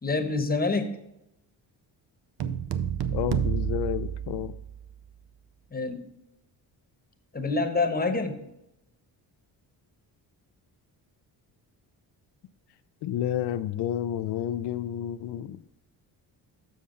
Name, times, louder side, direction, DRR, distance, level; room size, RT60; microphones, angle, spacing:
voice 1, 0.0-0.9 5.7-6.1 7.3-8.4, left 3 dB, 20° left, 7 dB, 1.1 m, -26 dB
sound 1, 2.4-4.9, right 8 dB, 60° right, 0.7 m, -29 dB
voice 2, 3.1-4.5 13.0-15.6, left 11 dB, 65° left, 12 dB, 0.6 m, -30 dB
7.2 x 6.3 x 3.8 m, 0.85 s
cardioid pair, 75°, 43 cm